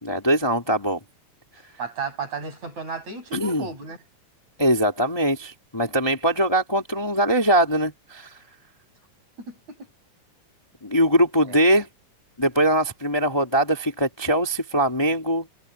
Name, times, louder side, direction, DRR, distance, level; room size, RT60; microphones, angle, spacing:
voice 1, 0.0-1.0 3.3-3.7 4.6-8.3 10.8-11.9 12.4-15.5, right 1 dB, 10° left, 2.2 m, -22 dB
voice 2, 1.8-4.0 9.4-9.8 11.5-11.6, right 4 dB, 60° right, 8.5 m, -33 dB
omnidirectional pair, 3.6 m